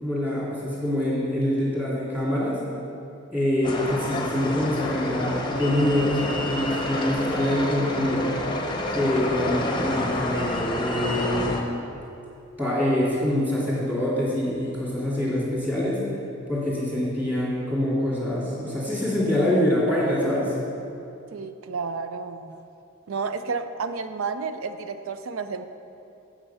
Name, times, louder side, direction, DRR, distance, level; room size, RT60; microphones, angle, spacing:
voice 1, 0.0-2.6 3.3-8.3 8.9-11.7 12.6-16.0 16.5-20.5, left 1 dB, 10° right, -7 dB, 2.4 m, -25 dB
sound 1, 3.6-11.6, left 1 dB, 25° left, 0.7 m, -29 dB
voice 2, 21.3-22.6 23.1-25.7, right 5 dB, 90° right, 10 dB, 0.5 m, -31 dB
8.7 x 7.3 x 5.6 m, 2.7 s
head